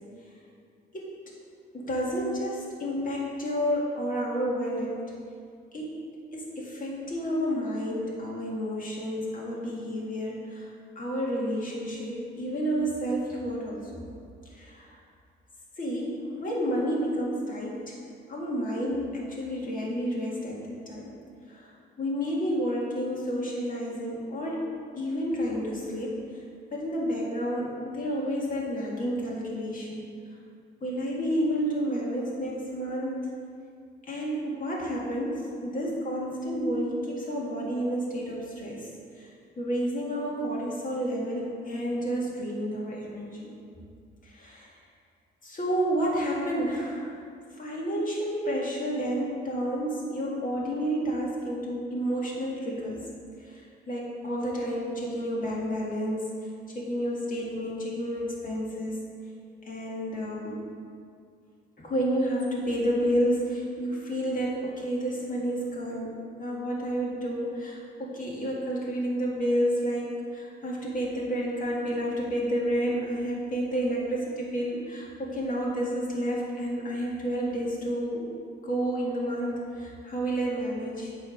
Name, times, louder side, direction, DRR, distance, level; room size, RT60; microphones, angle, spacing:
voice 1, 1.7-5.1 5.7-6.0 6.3-10.7 11.0-14.0 14.5-15.0 15.8-18.0 18.3-21.1 21.5-21.7 22.0-24.7 25.0-26.2 26.7-30.0 30.8-33.2 34.1-38.8 39.2-39.3 39.6-43.5 44.2-44.7 45.4-47.2 47.6-53.1 53.4-53.6 53.9-56.3 56.7-59.0 59.7-60.6 61.8-78.4 78.6-81.1, equal, 45° left, -4 dB, 1.9 m, -30 dB
8.4 x 3.5 x 6.1 m, 2.3 s
cardioid pair, 90°, 20 cm